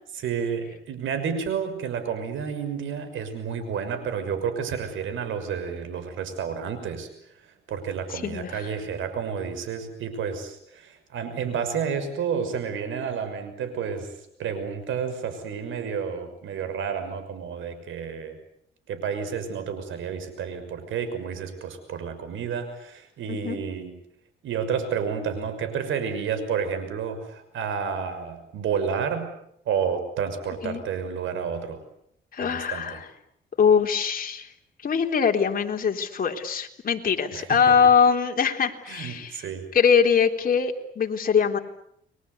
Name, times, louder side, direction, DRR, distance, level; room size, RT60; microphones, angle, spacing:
voice 1, 0.1-7.1 7.5-14.1 14.4-18.4 18.9-23.9 24.4-29.3 29.7-31.8 32.4-33.0 37.3-37.8 38.9-39.7, right 7 dB, 80° right, 10 dB, 6.2 m, -30 dB
voice 2, 8.1-8.7 23.3-23.6 30.6-30.8 32.3-33.1 33.6-34.5 34.8-39.4 39.7-41.6, left 6 dB, 45° left, 3 dB, 3.7 m, -22 dB
30.0 x 23.0 x 8.2 m, 0.72 s
cardioid pair, 90°, 20 cm